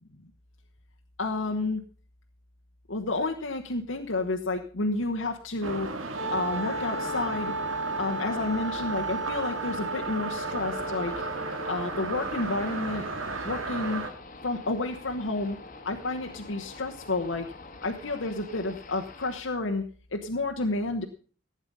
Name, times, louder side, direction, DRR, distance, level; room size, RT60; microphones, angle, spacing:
voice 1, 1.2-1.8 2.9-5.9 6.3-7.5 8.0-11.1 11.7-13.0 13.4-14.0 14.4-15.6 15.8-17.5 17.8-19.8 20.1-21.0, left 2 dB, 70° left, 1 dB, 1.2 m, -30 dB
sound 1, 5.6-14.1, right 3 dB, 85° right, 2.0 m, -35 dB
Wind instrument woodwind instrument, 6.1-12.1, right 2 dB, 60° right, 2.1 m, -34 dB
sound 2, 10.6-19.4, left 3 dB, 45° left, 1.5 m, -46 dB
15.5 x 8.9 x 5.4 m, 0.41 s
head